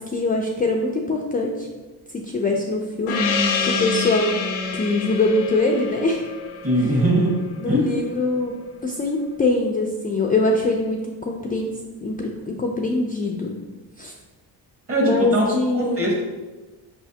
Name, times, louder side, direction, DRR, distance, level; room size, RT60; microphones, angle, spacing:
voice 1, 0.0-1.7 2.1-3.2 3.6-4.4 4.7-6.2 6.8-6.9 7.6-8.5 8.8-13.6 14.0-14.1 15.0-16.1, left 2 dB, 20° left, 0 dB, 0.4 m, -23 dB
Gong, 3.1-8.1, left 4 dB, 90° left, 0.7 m, -27 dB
voice 2, 6.6-7.4 7.7-7.8 14.9-15.5 15.7-16.2, right 1 dB, 30° right, -2 dB, 1.4 m, -20 dB
5.4 x 3.2 x 2.8 m, 1.2 s
cardioid pair, 90°, 44 cm